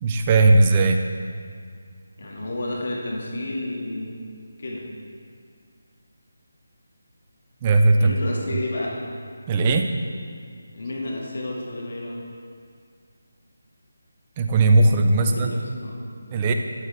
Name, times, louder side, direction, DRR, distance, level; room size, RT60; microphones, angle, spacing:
voice 1, 0.0-1.0 7.6-8.1 9.5-9.9 14.4-15.6 16.3-16.5, right 2 dB, 25° right, 4 dB, 0.5 m, -18 dB
voice 2, 2.2-4.2 4.6-4.8 8.0-9.0 10.7-12.2 15.2-16.2, left 1 dB, 55° left, -3 dB, 1.8 m, -31 dB
9.2 x 7.3 x 3.4 m, 2.1 s
figure-of-eight pair, 155°, 0 cm